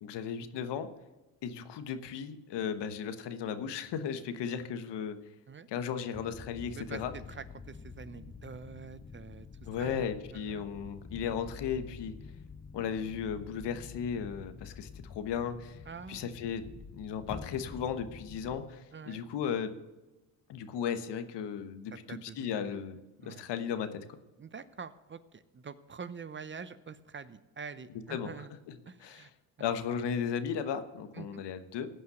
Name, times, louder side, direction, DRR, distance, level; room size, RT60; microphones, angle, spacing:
voice 1, 0.0-0.9 1.4-5.2 5.7-7.1 9.6-12.1 12.7-15.8 16.1-16.7 16.9-19.7 20.5-24.2 28.1-28.3 28.7-29.3 29.6-31.9, left 7 dB, 70° left, 10 dB, 1.3 m, -35 dB
sound 1, 6.1-18.6, left 5 dB, 20° left, 0.8 m, -48 dB
voice 2, 6.7-9.5 9.8-10.1 10.3-10.7 15.9-16.4 18.9-19.2 21.9-22.8 23.2-23.4 24.4-28.6 28.9-29.3 31.1-31.4, right 5 dB, 25° right, 14 dB, 0.7 m, -46 dB
16.0 x 5.7 x 7.8 m, 1.1 s
supercardioid pair, 80°, 43 cm